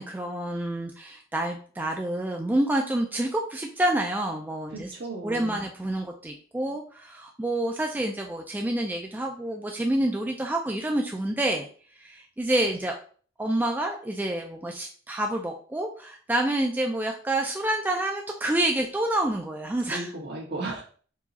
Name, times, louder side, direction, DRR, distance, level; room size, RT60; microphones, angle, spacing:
voice 1, 0.0-4.9 5.2-11.7 12.0-13.0 13.4-20.1, right 1 dB, 10° right, 2 dB, 0.3 m, -28 dB
voice 2, 4.7-5.6 19.9-20.8, right 2 dB, 60° right, -3 dB, 1.5 m, -35 dB
4.6 x 2.3 x 4.0 m, 0.44 s
head